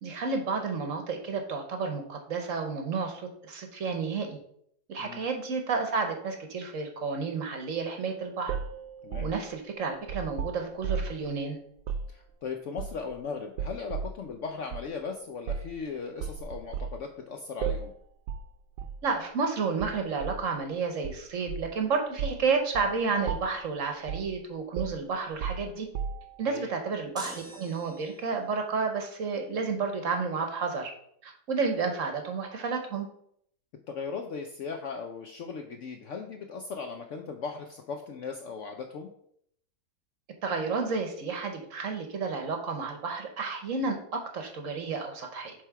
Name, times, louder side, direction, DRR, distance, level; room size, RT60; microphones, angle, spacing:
voice 1, 0.0-4.4 4.9-8.5 9.2-11.6 19.0-25.9 26.4-30.9 31.2-33.1 40.4-45.5, right 4 dB, 55° right, 4 dB, 1.1 m, -31 dB
sound 1, 8.5-11.2 11.8-12.1 12.8-13.2 13.6-14.2 14.7-14.9 15.5-15.8 16.2-17.0 17.6-18.0 18.3-18.5 18.8-19.0 19.8-20.4 21.0-21.8 22.2-22.4 22.7-22.9 23.3-23.7 24.1-24.4 24.8-26.4, right 6 dB, 90° right, 1.2 m, -34 dB
voice 2, 12.1-17.9 26.5-26.7 33.9-39.1, left 5 dB, 65° left, 4 dB, 0.7 m, -38 dB
sound 2, 27.2-28.5, right 1 dB, 5° right, 1.0 m, -44 dB
7.4 x 3.4 x 4.6 m, 0.68 s
omnidirectional pair, 1.8 m